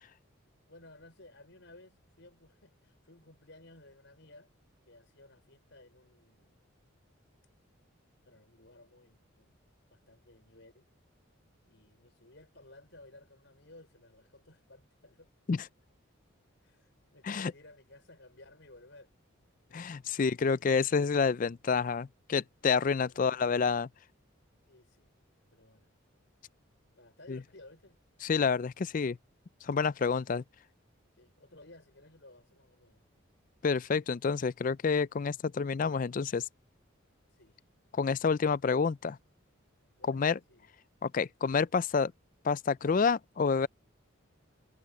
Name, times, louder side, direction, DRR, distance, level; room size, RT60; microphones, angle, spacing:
voice 1, 0.7-4.5 4.8-6.7 8.2-9.6 9.9-10.9 11.6-15.3 16.6-19.1 23.1-23.4 24.6-25.1 25.5-25.9 26.9-28.0 31.2-33.0 37.3-37.7 40.0-40.7, left 2 dB, 60° left, 5.8 m, -57 dB
voice 2, 19.7-23.9 27.3-27.4 28.2-29.2 29.6-30.4 33.6-36.4 37.9-39.2 40.1-40.4 41.0-42.1 42.4-43.7, left 5 dB, 40° left, 0.3 m, -28 dB
head